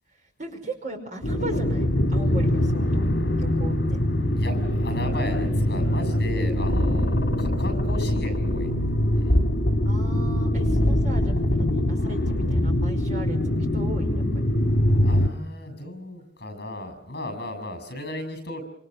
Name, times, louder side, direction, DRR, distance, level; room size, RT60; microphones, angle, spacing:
voice 1, 0.1-3.1 3.4-4.0 7.1-7.7 9.8-14.4, right 2 dB, 45° right, 4 dB, 5.1 m, -38 dB
sound 1, 1.2-15.3, left 1 dB, 75° left, 2.3 m, -23 dB
voice 2, 4.4-8.7 9.1-9.4 15.0-18.6, left 1 dB, 60° left, 10 dB, 6.8 m, -36 dB
27.5 x 26.5 x 6.5 m, 0.77 s
head